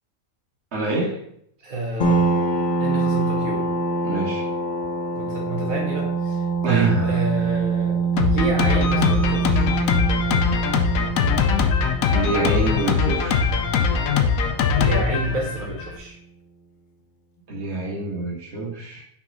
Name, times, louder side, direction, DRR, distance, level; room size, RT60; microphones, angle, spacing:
voice 1, 0.7-1.2 4.0-4.5 6.6-7.2 12.1-13.6 17.5-19.0, right 3 dB, 50° right, -3 dB, 1.8 m, -26 dB
voice 2, 1.6-2.2 2.8-3.7 5.2-9.7 14.8-16.2, right 1 dB, 75° right, -2 dB, 1.7 m, -29 dB
sound 1, 2.0-15.3, right 4 dB, 50° left, 0.6 m, -25 dB
Drum kit, 8.2-16.0, left 6 dB, 90° left, 1.1 m, -21 dB
5.9 x 3.5 x 5.3 m, 0.70 s
omnidirectional pair, 1.4 m